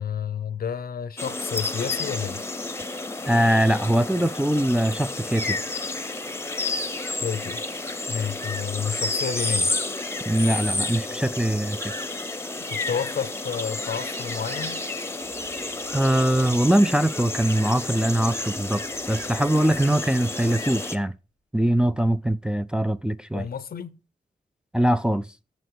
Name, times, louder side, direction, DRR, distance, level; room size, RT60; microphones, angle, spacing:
voice 1, 0.0-2.4 7.2-7.6 8.1-9.7 12.6-14.9 23.3-24.0, left 7 dB, 65° left, 0.6 m, -30 dB
sound 1, 1.2-21.0, left 2 dB, 15° left, 0.8 m, -31 dB
voice 2, 3.3-5.6 10.3-11.9 15.9-21.1 21.5-23.5 24.7-25.3, right 1 dB, 5° right, 0.3 m, -22 dB
sound 2, 15.2-17.0 18.1-21.0, right 1 dB, 80° right, 4.0 m, -53 dB
7.9 x 6.5 x 4.8 m
wide cardioid pair, 110°, 16 cm